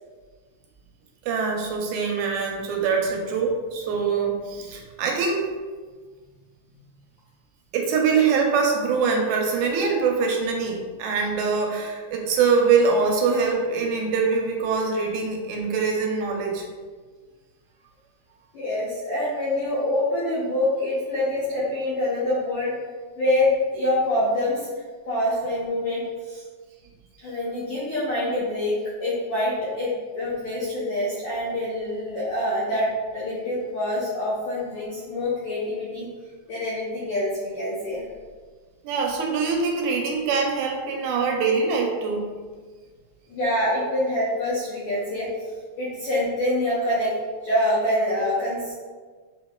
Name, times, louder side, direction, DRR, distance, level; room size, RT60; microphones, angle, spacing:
voice 1, 1.2-5.5 7.7-16.7 38.8-42.3, right 5 dB, 85° right, 1 dB, 2.0 m, -23 dB
voice 2, 18.5-22.7 23.2-24.7 25.1-26.4 27.2-36.1 36.5-38.0 43.3-45.3 45.8-47.1 47.4-48.7, left 1 dB, 70° left, -8 dB, 1.4 m, -25 dB
5.3 x 3.0 x 2.2 m, 1.5 s
omnidirectional pair, 3.4 m